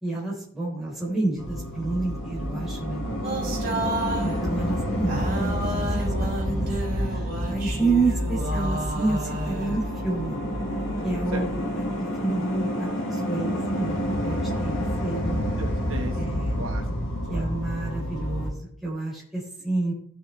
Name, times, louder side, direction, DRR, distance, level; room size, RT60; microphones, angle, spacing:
voice 1, 0.0-3.0 4.1-10.4 11.0-15.5 16.2-16.6 17.3-19.9, right 3 dB, ahead, -6 dB, 3.8 m, -30 dB
sound 1, 1.4-18.5, equal, 65° left, 1.8 m, -29 dB
voice 2, 3.0-3.4 11.3-11.5 15.5-16.9 17.3-17.5, right 1 dB, 70° right, 4 dB, 1.3 m, -36 dB
sound 2, 3.2-4.5 5.1-10.0, right 1 dB, 45° right, 4.3 m, -31 dB
14.5 x 6.7 x 3.2 m, 0.64 s
head